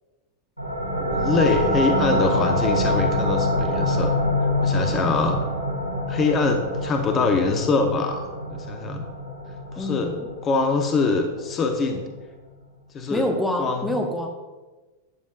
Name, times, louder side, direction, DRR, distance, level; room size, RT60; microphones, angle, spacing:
sound 1, 0.6-11.9, left 1 dB, 85° left, 3.5 m, -26 dB
voice 1, 1.0-4.1 4.6-5.4 6.1-9.0 9.7-10.1 10.4-12.0 12.9-13.2 13.6-14.0, left 4 dB, 25° left, 5 dB, 1.2 m, -24 dB
voice 2, 9.8-10.3 13.1-14.3, left 1 dB, 5° left, 3 dB, 1.2 m, -27 dB
13.5 x 9.6 x 2.6 m, 1.2 s
figure-of-eight pair, 90°, 0 cm